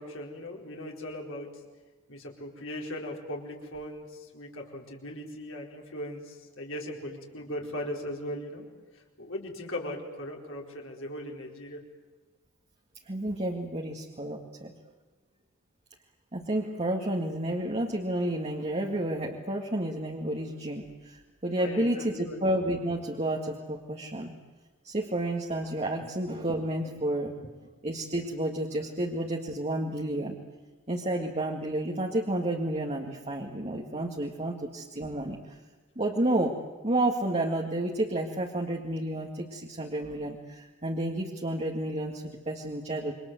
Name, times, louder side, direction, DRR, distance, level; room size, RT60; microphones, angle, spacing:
voice 1, 0.0-1.5 2.1-8.6 9.2-11.8 21.6-22.4 26.8-26.9 27.4-27.5, left 1 dB, 65° left, 0 dB, 4.6 m, -38 dB
voice 2, 13.1-14.7 16.3-24.3 24.8-27.4 27.8-30.4 30.9-35.6 36.0-43.1, right 1 dB, 30° right, 0 dB, 2.1 m, -31 dB
28.5 x 24.0 x 7.8 m, 1.3 s
head